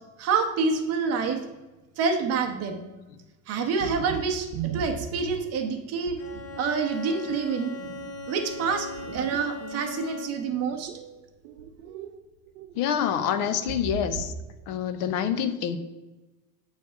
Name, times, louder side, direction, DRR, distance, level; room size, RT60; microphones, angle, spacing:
voice 1, 0.2-1.4 2.0-2.8 3.5-4.5 4.7-6.2 6.6-7.7 8.3-10.9, right 5 dB, 35° right, 5 dB, 0.7 m, -27 dB
sound 1, 3.7-5.6 6.1-6.7 7.1-10.3 10.7-12.2 12.5-12.8 13.4-14.5 14.8-15.2, right 6 dB, 85° right, 0.7 m, -38 dB
Bowed string instrument, 6.2-10.6, left 4 dB, 35° left, 0.7 m, -39 dB
voice 2, 12.8-14.3 14.7-15.8, left 8 dB, 80° left, 10 dB, 0.8 m, -26 dB
7.8 x 3.2 x 5.5 m, 1.1 s
cardioid pair, 165°, 46 cm